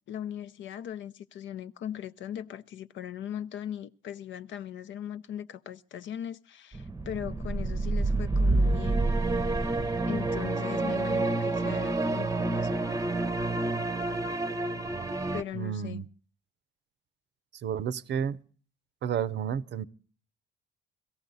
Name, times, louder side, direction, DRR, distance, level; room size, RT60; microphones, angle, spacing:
voice 1, 0.1-9.1 10.1-12.9 15.3-16.0, left 10 dB, 70° left, 0.6 m, -39 dB
sound 1, 6.7-15.4, right 2 dB, 15° right, 0.7 m, -28 dB
voice 2, 15.5-16.0 17.6-18.4 19.0-19.8, right 8 dB, 60° right, 0.6 m, -31 dB
17.0 x 14.5 x 4.0 m
cardioid pair, 90°, 20 cm